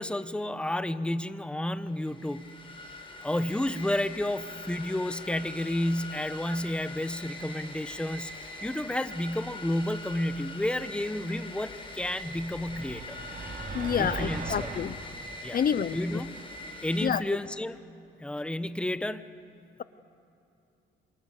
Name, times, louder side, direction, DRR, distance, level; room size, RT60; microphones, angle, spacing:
voice 1, 0.0-2.5 3.2-13.2 14.0-14.7 15.4-15.6 15.9-16.3 16.8-17.8 18.2-19.2, left 1 dB, 5° left, 12 dB, 1.0 m, -31 dB
sound 1, 1.9-17.1, left 2 dB, 25° left, 4.8 m, -43 dB
sound 2, 12.1-15.0, right 3 dB, 40° right, 2.7 m, -38 dB
voice 2, 13.7-14.9 15.5-16.2 17.0-17.2, left 8 dB, 45° left, 15 dB, 0.7 m, -28 dB
29.0 x 26.5 x 6.7 m, 2.7 s
cardioid pair, 90°, 20 cm